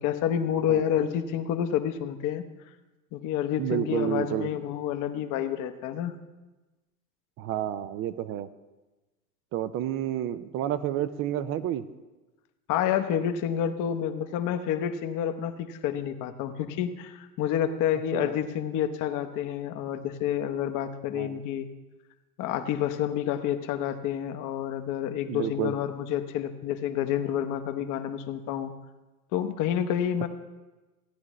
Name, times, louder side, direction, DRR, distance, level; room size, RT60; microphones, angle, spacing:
voice 1, 0.0-2.5 3.1-6.2 12.7-21.7 22.4-28.7 29.3-30.3, left 10 dB, 40° left, 8 dB, 1.0 m, -29 dB
voice 2, 3.6-4.5 7.4-8.5 9.5-11.9 18.1-18.4 21.1-21.4 25.3-25.7, right 11 dB, 30° right, 15 dB, 0.5 m, -30 dB
16.0 x 9.7 x 3.1 m, 1.1 s
hypercardioid pair, 110°, 46 cm